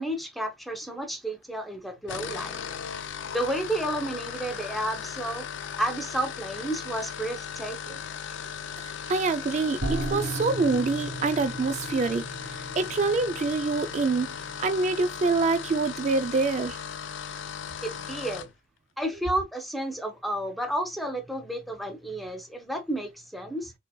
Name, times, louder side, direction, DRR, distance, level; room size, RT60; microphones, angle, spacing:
voice 1, 0.0-2.6 3.3-5.5 5.8-8.0 17.8-18.5 19.0-23.7, right 1 dB, ahead, 0.6 m, -31 dB
sound 1, 2.0-18.5, left 7 dB, 80° left, 0.4 m, -37 dB
voice 2, 8.8-12.2 12.8-14.3 14.6-16.8, right 3 dB, 40° right, 0.3 m, -26 dB
sound 2, 9.8-15.1, right 1 dB, 60° right, 1.3 m, -36 dB
3.7 x 2.9 x 2.2 m
head